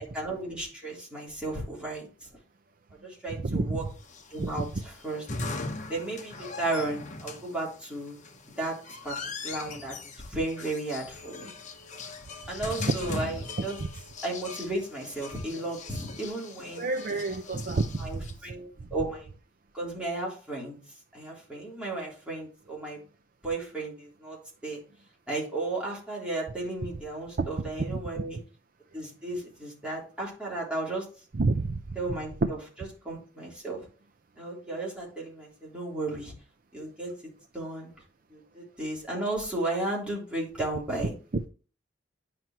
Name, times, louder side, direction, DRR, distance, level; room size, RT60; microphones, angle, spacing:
voice 1, 0.1-2.3 3.0-3.8 4.3-5.3 5.9-8.2 8.6-8.8 9.0-9.1 9.4-11.5 12.5-13.8 14.2-16.9 18.0-19.3 19.7-20.8 21.1-23.0 23.4-24.4 24.6-24.8 25.3-28.4 28.9-31.0 31.9-33.9 34.4-36.3 36.7-37.1 37.5-37.9 38.3-41.1, right 2 dB, 5° right, 3.3 m, -34 dB
voice 2, 3.4-3.8 4.4-4.7 16.8-18.2 27.4-27.5 27.9-28.0 31.4-31.8, right 3 dB, 45° right, 0.5 m, -28 dB
sound 1, 4.0-18.3, left 3 dB, 40° left, 1.0 m, -40 dB
9.4 x 5.9 x 2.9 m
head